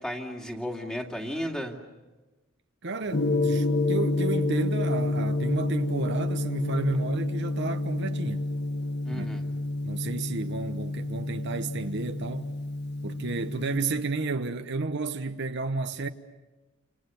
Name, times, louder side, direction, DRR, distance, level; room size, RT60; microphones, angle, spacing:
voice 1, 0.0-1.8 9.0-9.4, equal, 5° left, 2.4 m, -34 dB
voice 2, 2.8-8.5 9.1-9.3 9.8-12.5 13.0-16.1, right 3 dB, 60° right, 1.0 m, -32 dB
Gong, 3.1-13.8, left 2 dB, 55° left, 1.3 m, -29 dB
29.0 x 28.0 x 7.0 m
head